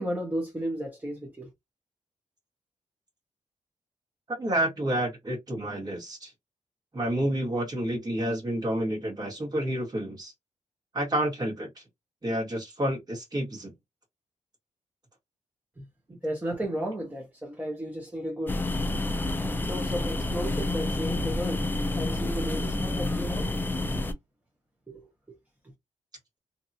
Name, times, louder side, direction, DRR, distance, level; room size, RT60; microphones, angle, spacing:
voice 1, 0.0-1.5 15.8-15.9 16.2-18.6 19.7-21.7 21.9-23.5 24.9-25.4, equal, 15° right, 1.2 m, -34 dB
voice 2, 4.3-6.3 6.9-10.3 10.9-11.7 12.2-13.7, right 1 dB, 30° right, 1.8 m, -29 dB
sound 1, 18.5-24.1, left 2 dB, 15° left, 0.5 m, -29 dB
2.9 x 2.8 x 2.7 m
cardioid pair, 90°, 13 cm